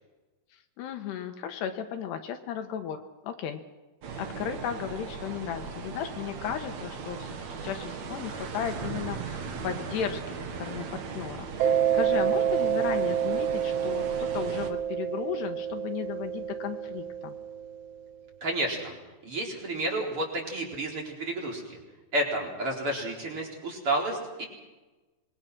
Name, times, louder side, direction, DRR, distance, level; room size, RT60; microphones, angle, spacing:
voice 1, 0.8-3.6 4.2-7.3 7.6-17.4, left 9 dB, 80° left, 5 dB, 3.3 m, -35 dB
sound 1, 4.0-14.7, right 5 dB, 50° right, 2.5 m, -38 dB
Mallet percussion, 11.6-18.0, right 9 dB, 90° right, 3.2 m, -28 dB
voice 2, 18.4-19.0 19.2-21.8 22.1-24.4, right 1 dB, 30° right, 0 dB, 4.8 m, -31 dB
26.0 x 22.0 x 6.2 m, 1.2 s
omnidirectional pair, 4.8 m